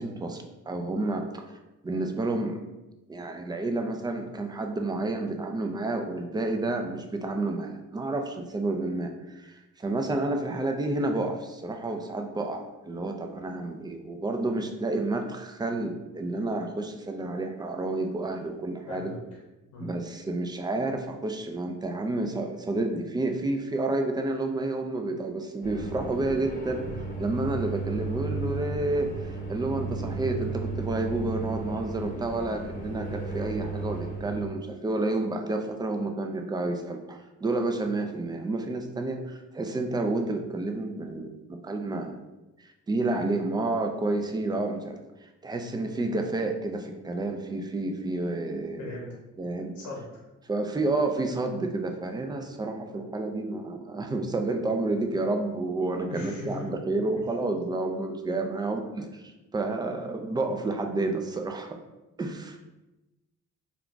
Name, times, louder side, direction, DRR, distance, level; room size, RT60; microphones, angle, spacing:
voice 1, 0.0-1.6 1.8-2.7 3.1-19.1 19.8-26.8 27.2-42.2 42.6-49.0 49.4-49.7 50.5-61.8 62.2-62.7, right 2 dB, 15° right, 4 dB, 0.3 m, -30 dB
voice 2, 18.9-19.2 19.7-19.9 48.8-49.2 49.7-50.2 56.1-56.7, left 2 dB, 75° left, -2 dB, 0.7 m, -39 dB
sound 1, 25.6-34.5, right 3 dB, 30° left, 0.9 m, -34 dB
2.3 x 2.3 x 3.7 m, 1.0 s
cardioid pair, 90°, 30 cm